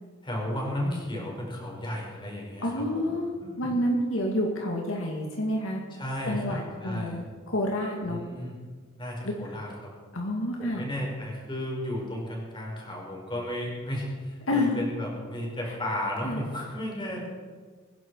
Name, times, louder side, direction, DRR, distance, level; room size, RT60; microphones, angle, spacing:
voice 1, 0.2-3.1 3.4-3.7 5.9-7.2 8.1-8.6 9.0-9.9 10.6-17.3, left 1 dB, 25° left, -2 dB, 4.8 m, -34 dB
voice 2, 2.6-3.3 3.6-5.8 6.3-8.2 9.2-9.5 10.1-10.8 14.5-14.8 16.2-16.4, left 1 dB, 70° left, 0 dB, 2.3 m, -28 dB
24.0 x 11.0 x 4.8 m, 1.5 s
head